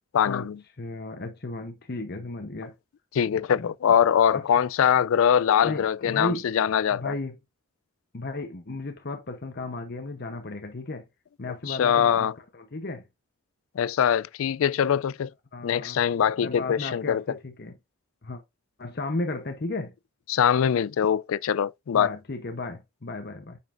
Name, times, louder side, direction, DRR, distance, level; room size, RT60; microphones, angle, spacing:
voice 1, 0.1-0.6 3.1-7.1 11.7-12.3 13.8-15.3 15.6-17.2 20.3-22.2, left 8 dB, 70° left, 0.3 m, -23 dB
voice 2, 0.8-2.7 3.6-3.7 4.3-4.4 5.6-6.5 6.9-7.3 8.1-11.0 11.4-13.0 15.5-16.0 16.4-17.8 18.2-18.4 18.8-19.9 21.9-23.6, left 2 dB, 45° left, 0.8 m, -34 dB
9.0 x 5.4 x 2.5 m
head